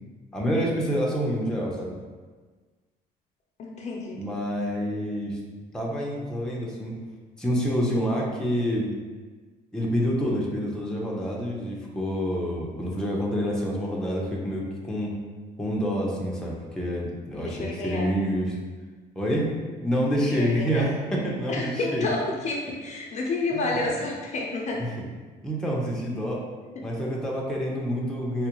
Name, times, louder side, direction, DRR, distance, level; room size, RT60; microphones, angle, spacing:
voice 1, 0.3-2.0 4.1-5.4 5.7-7.0 7.4-8.9 9.7-15.2 15.6-18.6 19.2-19.5 19.8-22.0 23.5-23.8 24.8-24.9 25.4-26.4 26.8-28.5, equal, 5° left, -4 dB, 0.7 m, -27 dB
voice 2, 3.6-4.5 17.4-18.1 20.2-20.9 21.5-24.8, left 2 dB, 45° left, -1 dB, 0.5 m, -30 dB
4.3 x 2.3 x 2.9 m, 1.4 s
cardioid pair, 110°, 17 cm